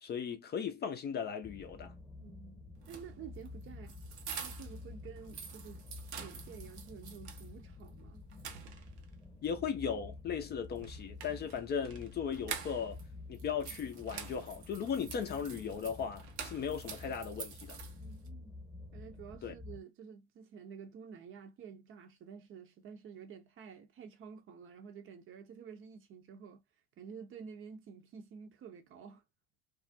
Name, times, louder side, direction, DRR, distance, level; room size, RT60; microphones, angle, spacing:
voice 1, 0.0-1.9 9.4-13.0 13.3-17.8 19.4-19.5, left 7 dB, 30° left, 0.5 m, -37 dB
sound 1, 1.4-19.8, left 3 dB, 10° left, 0.9 m, -50 dB
voice 2, 2.2-4.0 4.4-5.9 6.2-8.2 18.0-18.5 18.9-26.6 27.0-29.2, right 7 dB, 40° right, 0.7 m, -50 dB
sound 2, 2.8-4.8 5.2-7.5 7.9-8.0 8.3-9.1 10.8-13.0 13.3-18.3, right 7 dB, 75° right, 0.7 m, -47 dB
2.4 x 2.0 x 2.6 m
hypercardioid pair, 70°, 34 cm